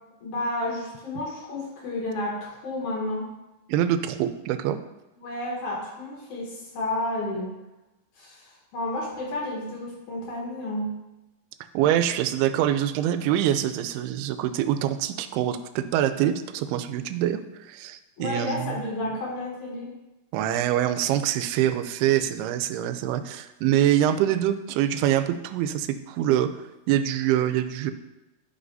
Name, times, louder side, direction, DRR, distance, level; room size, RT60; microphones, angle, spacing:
voice 1, 0.2-3.2 5.2-7.5 8.2-10.9 18.2-19.9, left 1 dB, 60° left, -3 dB, 2.4 m, -31 dB
voice 2, 3.7-4.8 11.7-17.4 17.7-18.8 20.3-26.5 26.9-27.9, right 11 dB, 85° right, 11 dB, 2.5 m, -24 dB
11.5 x 5.5 x 2.7 m, 1.0 s
omnidirectional pair, 4.6 m